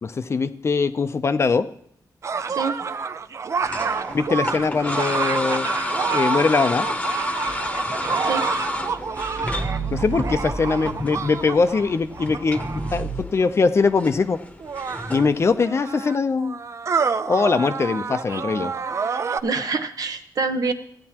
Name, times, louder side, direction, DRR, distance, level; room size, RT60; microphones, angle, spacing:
voice 1, 0.0-1.7 4.1-5.7 6.1-6.9 9.9-12.6 12.9-14.4 15.1-16.6 17.3-18.7, left 4 dB, 40° left, 10 dB, 0.5 m, -21 dB
sound 1, 2.2-13.0 13.9-14.0 14.6-19.4, right 5 dB, 45° right, 0.4 m, -28 dB
voice 2, 2.5-2.8 8.2-8.5 19.4-20.7, right 4 dB, 60° right, 8 dB, 0.8 m, -25 dB
sound 2, 3.7-15.5, left 1 dB, 20° left, 0.9 m, -31 dB
sound 3, 7.5-11.8 12.3-13.2, right 3 dB, 25° right, 1.3 m, -32 dB
15.5 x 9.6 x 2.9 m, 0.67 s
wide cardioid pair, 155°, 7 cm